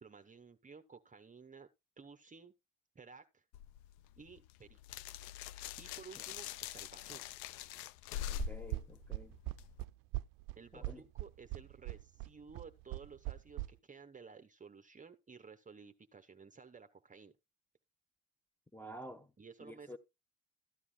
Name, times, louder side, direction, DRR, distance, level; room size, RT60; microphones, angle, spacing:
voice 1, 0.0-1.7 2.0-2.5 2.9-3.4 4.2-4.8 5.8-7.4 10.5-17.3 19.4-20.0, right 5 dB, 20° right, 0.8 m, -55 dB
sound 1, 3.5-9.8, left 11 dB, 85° left, 0.5 m, -45 dB
voice 2, 8.3-9.3 10.7-11.1 18.7-19.3 19.6-20.0, equal, 5° left, 1.1 m, -50 dB
sound 2, 8.4-13.7, right 19 dB, 65° right, 0.5 m, -40 dB
13.5 x 9.7 x 2.3 m
supercardioid pair, 75°, 35 cm